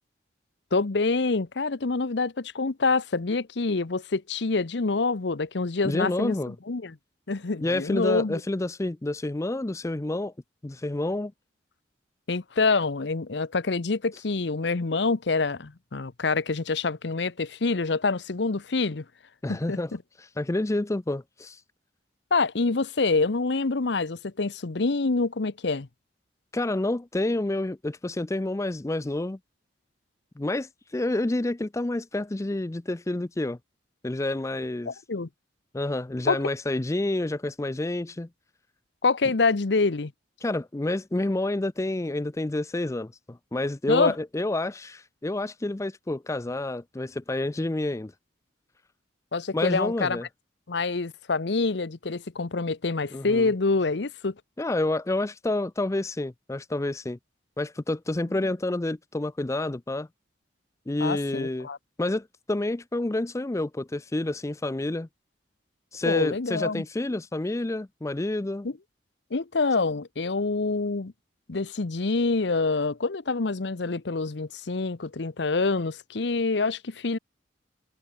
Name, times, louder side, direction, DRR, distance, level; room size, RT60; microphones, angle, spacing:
voice 1, 0.7-7.0 7.3-8.4 12.3-19.0 19.5-19.8 22.3-25.9 34.9-35.3 36.3-36.4 39.0-40.1 43.9-44.1 49.3-50.2 50.7-54.3 61.0-61.8 66.0-66.8 68.6-68.7 69.3-71.1 71.5-77.2, left 3 dB, 65° left, 0.8 m, -26 dB
voice 2, 5.8-6.5 7.6-10.3 10.6-11.3 19.4-19.9 20.4-21.6 26.5-29.4 30.4-33.6 34.0-34.9 35.7-38.3 40.4-48.1 49.5-50.2 53.1-53.5 54.6-57.2 57.6-60.1 60.9-61.7 62.0-65.1 65.9-68.7, left 2 dB, 15° left, 0.4 m, -29 dB
head